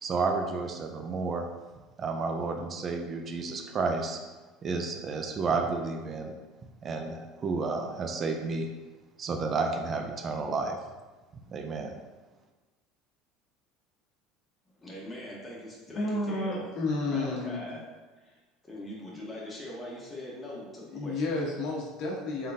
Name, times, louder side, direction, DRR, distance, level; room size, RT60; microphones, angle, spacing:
voice 1, 0.0-1.5 2.0-4.2 4.6-6.3 6.8-8.7 9.2-10.8 11.5-12.0, right 4 dB, 35° right, 3 dB, 0.4 m, -31 dB
voice 2, 14.8-16.8 17.0-17.8 18.2-21.2, left 1 dB, 15° left, -5 dB, 1.3 m, -42 dB
voice 3, 15.9-17.6 20.9-22.5, left 2 dB, 65° left, -3 dB, 1.1 m, -31 dB
3.6 x 3.6 x 2.7 m, 1.2 s
supercardioid pair, 105°, 0 cm